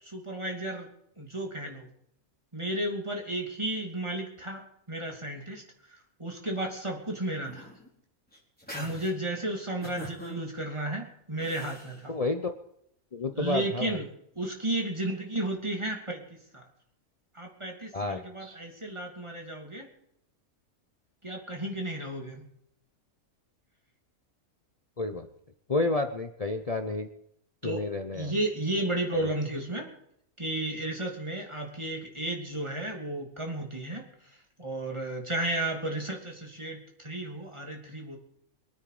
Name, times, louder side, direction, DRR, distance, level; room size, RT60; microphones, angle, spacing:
voice 1, 0.0-0.9 1.2-1.9 2.5-7.7 8.7-12.1 13.3-14.1 14.3-16.6 17.3-19.9 21.2-22.4 27.6-27.9 28.1-29.9 30.4-38.2, right 1 dB, 20° right, 1 dB, 2.9 m, -33 dB
sound 1, 7.4-7.9 8.3-9.1 9.8-10.4 11.4-11.9, equal, 5° left, 4.2 m, -42 dB
voice 2, 12.1-12.5 13.1-14.0 17.9-18.5 25.0-25.3 25.7-27.1 27.6-28.3, left 3 dB, 30° left, 7 dB, 0.8 m, -30 dB
24.0 x 9.2 x 5.0 m, 0.73 s
omnidirectional pair, 1.5 m